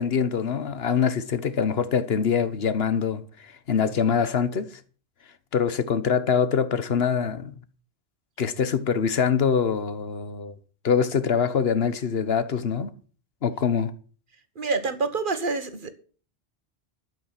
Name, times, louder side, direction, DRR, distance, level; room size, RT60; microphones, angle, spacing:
voice 1, 0.0-4.7 5.5-7.5 8.4-10.5 10.8-12.9 13.4-13.9, left 6 dB, 65° left, 1.3 m, -24 dB
voice 2, 14.5-15.9, right 3 dB, 50° right, 1.5 m, -27 dB
12.0 x 8.2 x 7.5 m
omnidirectional pair, 1.1 m